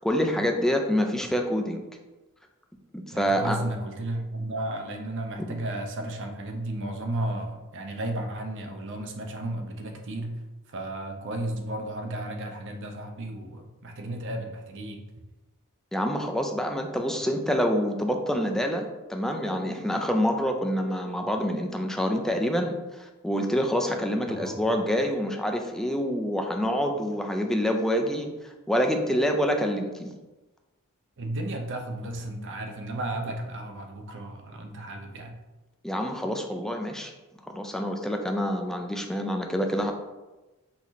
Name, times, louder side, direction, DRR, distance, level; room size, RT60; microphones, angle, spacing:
voice 1, 0.0-1.8 3.1-3.6 15.9-30.1 35.8-37.1 37.5-39.9, equal, ahead, 3 dB, 0.3 m, -27 dB
voice 2, 3.1-10.4 10.7-15.0 24.3-24.8 31.2-35.4, right 1 dB, 55° right, 4 dB, 0.6 m, -34 dB
5.7 x 2.8 x 3.0 m, 1.1 s
head